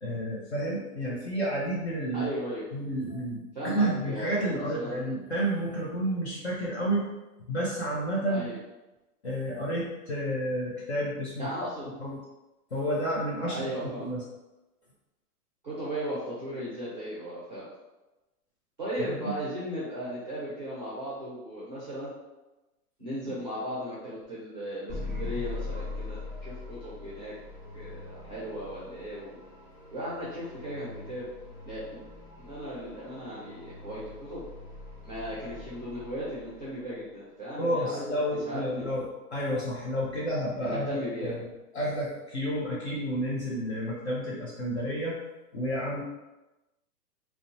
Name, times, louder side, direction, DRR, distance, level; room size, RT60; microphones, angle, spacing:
voice 1, 0.0-2.3 2.7-7.1 7.5-8.5 9.2-11.5 12.0-12.2 12.7-14.2 19.1-19.3 37.6-41.0 41.2-41.4 41.7-45.2 45.5-46.0, right 1 dB, 45° left, -5 dB, 0.5 m, -30 dB
voice 2, 2.1-2.7 3.5-5.1 8.3-8.6 11.4-11.9 13.5-14.1 15.6-17.6 18.8-22.1 23.0-27.3 27.7-29.4 29.9-31.3 31.6-32.0 32.4-34.4 35.0-38.2 38.4-39.0 40.6-41.3, equal, 30° right, -9 dB, 0.4 m, -36 dB
sound 1, 24.9-37.0, left 3 dB, 5° left, 1.0 m, -42 dB
2.6 x 2.1 x 2.5 m, 1.0 s
hypercardioid pair, 170°, 46 cm